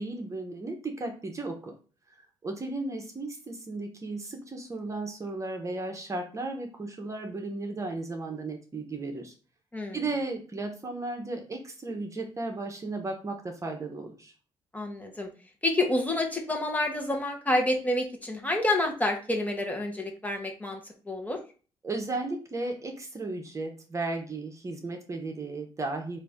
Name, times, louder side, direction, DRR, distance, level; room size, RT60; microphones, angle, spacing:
voice 1, 0.0-1.8 2.4-9.3 9.9-14.3 21.8-26.2, right 2 dB, 30° right, 3 dB, 0.9 m, -35 dB
voice 2, 14.7-15.3 15.6-20.8 21.1-21.4, left 1 dB, 15° left, 2 dB, 1.2 m, -28 dB
3.8 x 2.7 x 3.6 m, 0.36 s
supercardioid pair, 70°, 10 cm